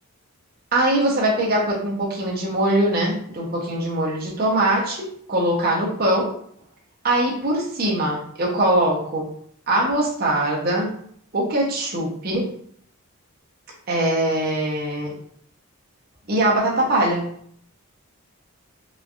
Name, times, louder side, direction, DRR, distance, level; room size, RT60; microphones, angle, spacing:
voice 1, 0.7-6.3 7.0-9.3 9.7-10.9 11.3-12.5 13.9-15.1 16.3-17.3, right 1 dB, 40° right, -2 dB, 0.6 m, -22 dB
3.0 x 2.3 x 2.5 m, 0.63 s
head